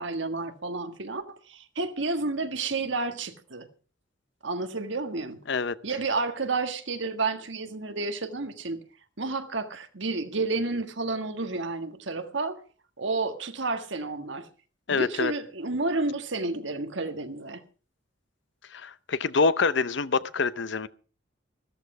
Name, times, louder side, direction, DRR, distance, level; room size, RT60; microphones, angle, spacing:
voice 1, 0.0-3.7 4.4-5.4 5.8-8.8 9.2-12.6 13.0-14.5 14.9-17.6, right 3 dB, 70° right, 1.6 m, -31 dB
voice 2, 14.9-15.3 18.7-20.9, left 4 dB, 65° left, 0.7 m, -26 dB
14.0 x 13.5 x 4.9 m
head